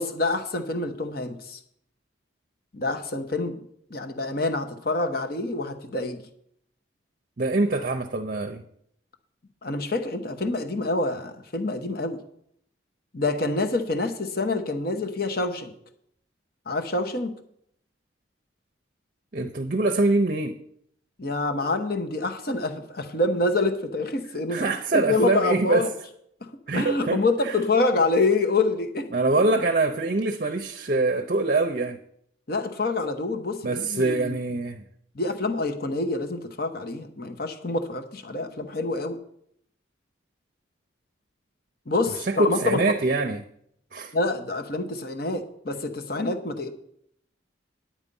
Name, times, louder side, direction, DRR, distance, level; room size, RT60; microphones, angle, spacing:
voice 1, 0.0-1.6 2.7-3.6 3.9-6.2 9.6-12.2 13.1-15.7 16.7-17.4 21.2-24.7 24.9-25.9 26.4-29.1 32.5-34.4 35.1-39.2 41.9-42.8 44.1-46.7, left 2 dB, 50° left, 1.0 m, -26 dB
voice 2, 7.4-8.6 19.3-20.6 24.5-25.9 26.7-27.6 29.1-32.0 33.6-34.8 42.1-43.4 43.9-44.1, right 2 dB, 45° right, 0.6 m, -24 dB
9.9 x 8.8 x 5.4 m
head